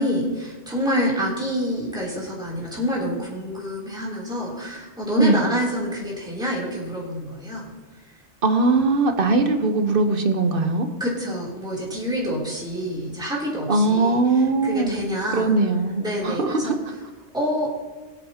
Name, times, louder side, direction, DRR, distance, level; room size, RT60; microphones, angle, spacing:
voice 1, 0.0-7.7 11.0-15.6 16.0-16.8 17.3-17.7, equal, 5° right, -6 dB, 3.3 m, -27 dB
voice 2, 8.4-10.9 13.7-14.9 15.3-16.8, right 3 dB, 50° right, 6 dB, 1.2 m, -20 dB
22.5 x 9.0 x 2.9 m, 1.3 s
omnidirectional pair, 1.2 m